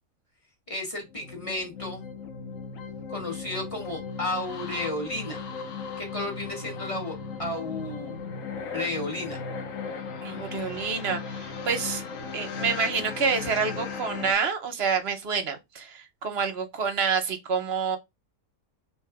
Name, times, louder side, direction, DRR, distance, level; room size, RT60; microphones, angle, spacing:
voice 1, 0.7-2.0 3.1-5.4 6.0-8.2 8.7-9.4, left 1 dB, 25° left, 1.3 m, -33 dB
sound 1, 1.0-14.3, left 5 dB, 70° left, 1.2 m, -37 dB
voice 2, 10.2-12.0 12.3-18.0, right 5 dB, 55° right, 0.8 m, -28 dB
3.1 x 2.8 x 4.5 m
omnidirectional pair, 1.5 m